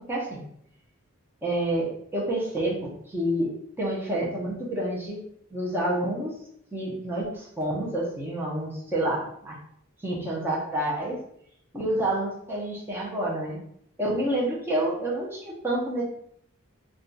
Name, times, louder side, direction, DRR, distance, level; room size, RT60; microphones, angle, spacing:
voice 1, 0.1-0.4 1.4-3.5 3.8-5.2 5.5-6.3 6.7-9.6 10.0-11.2 11.7-13.6 14.0-16.0, right 1 dB, 10° right, -5 dB, 0.7 m, -28 dB
2.4 x 2.3 x 3.9 m, 0.70 s
head